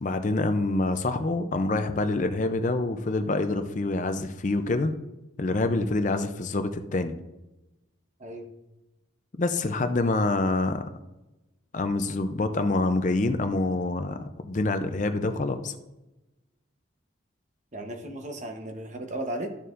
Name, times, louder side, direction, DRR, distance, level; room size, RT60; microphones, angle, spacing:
voice 1, 0.0-4.9 5.4-7.2 9.4-10.9 11.7-14.2 14.4-15.8, left 2 dB, 40° left, 8 dB, 0.5 m, -26 dB
voice 2, 17.7-19.5, right 1 dB, 35° right, 4 dB, 1.0 m, -35 dB
12.5 x 6.8 x 2.5 m, 0.99 s
head